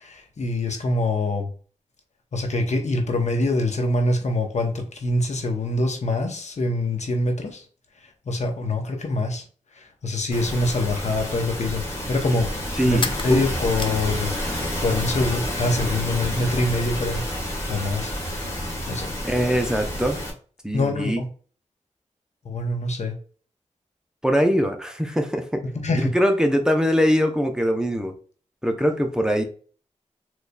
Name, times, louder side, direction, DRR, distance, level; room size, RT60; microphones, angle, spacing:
voice 1, 0.0-1.5 2.3-7.6 8.3-9.4 9.8-11.8 12.1-14.3 14.8-17.2 17.7-18.1 18.9-19.1 20.7-21.3 22.4-23.1 25.8-26.1, left 2 dB, 65° left, 4 dB, 0.8 m, -24 dB
sound 1, 10.3-20.3, equal, 20° left, 1.4 m, -29 dB
voice 2, 12.8-13.4 19.2-20.2 20.6-21.2 24.2-25.6 26.0-28.1 28.6-29.4, equal, 5° right, 4 dB, 0.6 m, -22 dB
sound 2, 13.0-14.9 15.2-16.0, left 5 dB, 40° left, 0.4 m, -34 dB
4.0 x 3.1 x 2.2 m, 0.41 s
wide cardioid pair, 70°, 13 cm